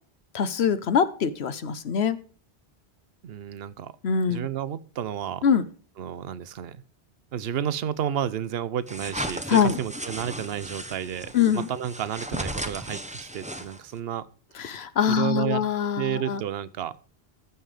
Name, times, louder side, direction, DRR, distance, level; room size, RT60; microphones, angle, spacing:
voice 1, 0.3-2.2 4.0-4.5 5.4-5.6 9.5-9.8 11.3-11.7 14.6-16.4, left 7 dB, 75° left, 14 dB, 1.1 m, -23 dB
voice 2, 3.2-3.9 4.3-5.4 6.0-6.8 7.3-14.3 14.7-15.6 16.0-16.9, right 9 dB, 65° right, 17 dB, 0.9 m, -31 dB
sound 1, 8.9-14.0, right 1 dB, 5° right, 0.9 m, -36 dB
14.5 x 5.6 x 4.9 m, 0.39 s
omnidirectional pair, 1.1 m